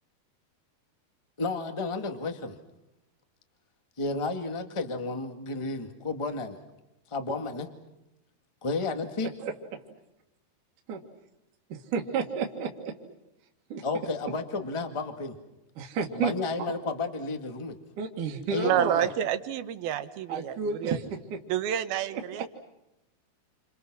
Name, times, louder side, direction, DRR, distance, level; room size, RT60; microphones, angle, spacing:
voice 1, 1.4-2.6 4.0-6.6 7.1-7.7 8.6-9.3 13.8-15.3 16.1-17.8 18.5-19.1, left 3 dB, 20° left, 7 dB, 0.7 m, -32 dB
voice 2, 9.4-9.8 10.9-11.0 11.7-13.0 13.7-13.8 15.8-16.3 18.0-19.0 20.3-21.0 21.3-21.4 22.1-22.5, right 5 dB, 60° right, 1 dB, 3.1 m, -31 dB
voice 3, 18.6-20.5 20.8-21.0 21.5-22.5, right 10 dB, 75° right, 11 dB, 3.0 m, -29 dB
29.0 x 28.5 x 6.2 m, 0.89 s
omnidirectional pair, 4.5 m